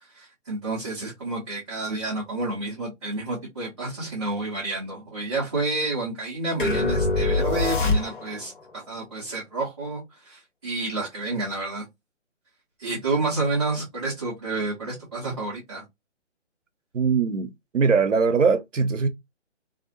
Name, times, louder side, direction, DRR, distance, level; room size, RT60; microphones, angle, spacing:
voice 1, 0.1-11.9 12.8-15.8, right 3 dB, 25° right, 0.6 m, -30 dB
sound 1, 6.6-8.5, left 3 dB, 45° left, 0.8 m, -23 dB
voice 2, 16.9-19.1, right 5 dB, 90° right, 0.6 m, -21 dB
2.5 x 2.1 x 2.5 m
figure-of-eight pair, 150°, 36 cm